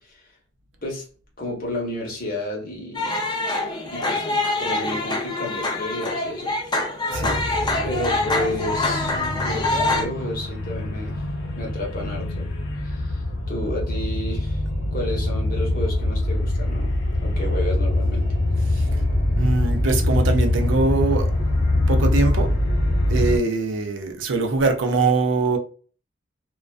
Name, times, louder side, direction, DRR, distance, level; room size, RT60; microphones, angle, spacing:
voice 1, 1.4-3.1 3.8-4.2 4.6-6.5 7.8-11.2 11.6-12.5 12.8-14.6 14.9-16.9 17.2-18.3 18.7-18.9, left 1 dB, 45° left, 0.9 m, -31 dB
sound 1, 2.9-10.0, left 2 dB, 20° left, 0.5 m, -25 dB
sound 2, 7.1-23.4, left 1 dB, 80° left, 0.7 m, -24 dB
voice 2, 7.1-7.4 19.4-21.3 21.9-22.5 23.1-25.6, right 3 dB, 65° right, 0.5 m, -22 dB
2.4 x 2.2 x 2.3 m
head